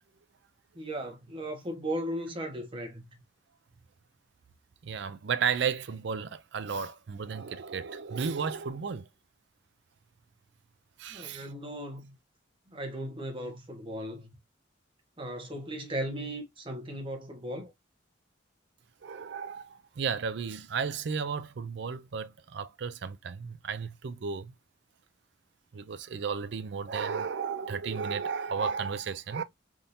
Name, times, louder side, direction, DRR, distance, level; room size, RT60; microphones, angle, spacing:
voice 1, 0.7-3.2 11.1-12.2 12.7-14.3 15.2-17.7, right 1 dB, 25° right, 1.0 m, -37 dB
voice 2, 4.8-9.1 11.0-11.5 19.0-24.5 25.7-29.4, right 6 dB, 60° right, 0.4 m, -33 dB
3.5 x 2.6 x 2.7 m
head